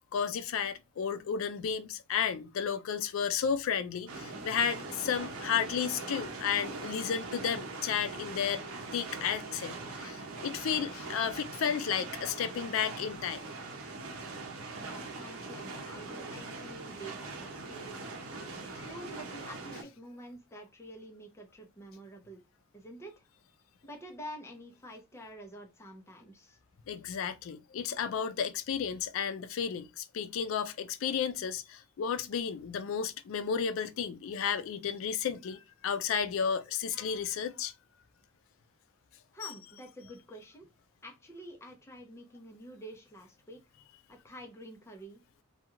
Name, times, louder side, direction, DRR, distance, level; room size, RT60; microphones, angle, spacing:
voice 1, 0.1-8.6 8.9-13.4 18.4-18.5 26.9-37.7 39.4-39.5, left 7 dB, 70° left, 0.3 m, -33 dB
sound 1, 4.1-19.8, right 3 dB, 90° right, 0.7 m, -42 dB
voice 2, 14.8-18.1 18.7-22.4 22.7-23.2 23.8-26.6 39.3-40.7 41.0-43.6 44.1-45.2, equal, 15° left, 0.5 m, -48 dB
2.3 x 2.3 x 2.9 m
head